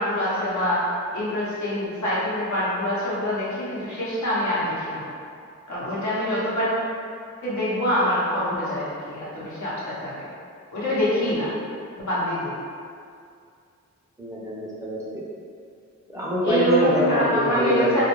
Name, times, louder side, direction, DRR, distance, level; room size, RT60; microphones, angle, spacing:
voice 1, 0.0-5.1 5.7-6.8 7.4-10.3 10.7-11.5 12.0-12.6 16.4-18.0, equal, 70° left, -9 dB, 0.9 m, -25 dB
voice 2, 14.2-15.2 16.1-18.0, equal, 10° right, -8 dB, 0.5 m, -25 dB
2.5 x 2.1 x 3.0 m, 2.4 s
wide cardioid pair, 90°, 30 cm